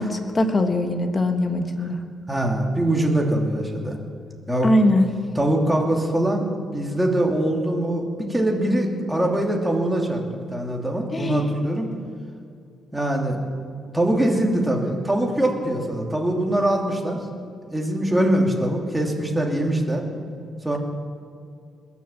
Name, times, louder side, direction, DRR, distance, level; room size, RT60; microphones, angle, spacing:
voice 1, 0.0-2.0 4.6-5.1 11.1-11.5, left 1 dB, 25° left, 6 dB, 1.5 m, -21 dB
voice 2, 2.3-4.0 4.5-4.7 5.3-11.9 12.9-13.4 13.9-17.2 17.7-20.0 20.6-20.8, right 1 dB, 10° right, 0 dB, 2.7 m, -23 dB
21.0 x 7.1 x 7.3 m, 2.3 s
cardioid pair, 90°, 0 cm